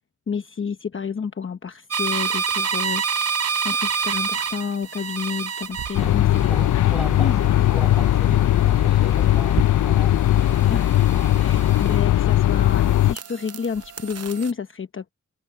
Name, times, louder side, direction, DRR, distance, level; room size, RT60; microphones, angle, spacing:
voice 1, 0.3-3.3 3.6-6.7 7.2-7.4 10.7-11.0 11.4-15.0, left 6 dB, 45° left, 0.9 m, -30 dB
sound 1, 1.9-12.3 12.7-14.5, right 6 dB, 55° right, 0.7 m, -29 dB
sound 2, 5.9-13.1, left 13 dB, 75° left, 0.5 m, -18 dB
voice 2, 6.5-7.4 7.7-10.7 11.3-11.7, equal, ahead, 5.0 m, -35 dB
wide cardioid pair, 140°, 30 cm